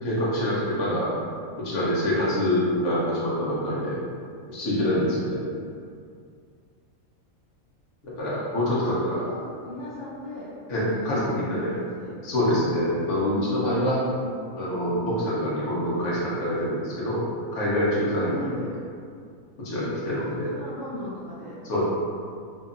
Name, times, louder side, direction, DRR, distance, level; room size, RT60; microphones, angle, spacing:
voice 1, 0.0-1.1 1.6-3.9 4.5-5.4 8.0-9.2 10.7-11.7 12.2-14.0 14.6-17.2 17.5-18.4 19.6-20.5 21.6-21.8, left 1 dB, 60° left, -7 dB, 1.0 m, -25 dB
voice 2, 8.6-8.9 9.2-10.5 10.9-12.1 13.2-14.3 18.3-18.8 20.1-21.5, left 2 dB, 25° right, -16 dB, 0.5 m, -37 dB
2.8 x 2.6 x 2.4 m, 2.3 s
omnidirectional pair, 1.5 m